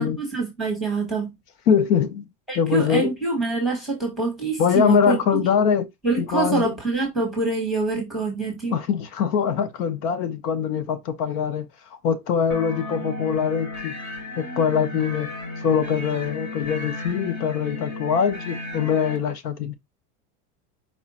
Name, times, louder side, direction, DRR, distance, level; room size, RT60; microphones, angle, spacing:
voice 1, 0.0-1.3 2.5-5.2 6.0-8.8, right 3 dB, ahead, 1.2 m, -25 dB
voice 2, 1.7-2.2 2.5-3.1 4.6-5.9 6.2-6.7 8.7-11.7 12.0-13.9 14.4-15.3 15.6-19.7, left 7 dB, 85° left, 1.0 m, -23 dB
sound 1, 12.5-19.2, left 2 dB, 20° left, 0.3 m, -34 dB
4.8 x 2.4 x 4.1 m
supercardioid pair, 165°, 45 cm